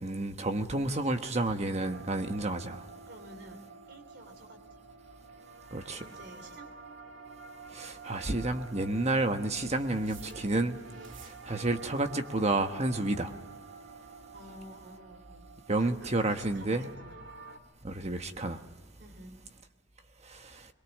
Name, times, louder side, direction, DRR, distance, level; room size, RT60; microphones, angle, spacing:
voice 1, 0.0-2.8 5.7-6.0 7.7-10.8 11.2-13.3 15.7-16.9 17.8-18.6 20.4-20.6, right 2 dB, 35° right, 7 dB, 1.1 m, -30 dB
sound 1, 1.8-17.6, right 4 dB, 80° right, 2.1 m, -49 dB
voice 2, 3.1-4.6 6.0-6.7 14.3-15.5 15.8-17.2 19.0-19.4, right 1 dB, 60° right, 7 dB, 3.6 m, -51 dB
23.0 x 22.5 x 7.3 m, 1.3 s
head